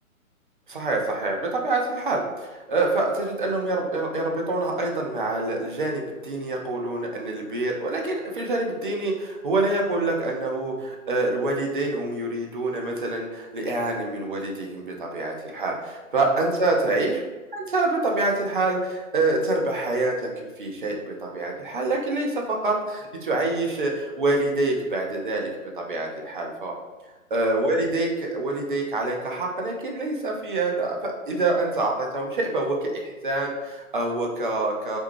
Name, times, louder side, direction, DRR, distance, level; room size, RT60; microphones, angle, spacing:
voice 1, 0.7-17.2 17.5-25.5 25.8-26.7 27.3-35.0, right 2 dB, 40° right, 0 dB, 0.4 m, -26 dB
2.5 x 2.2 x 3.0 m, 1.2 s
figure-of-eight pair, 130°, 42 cm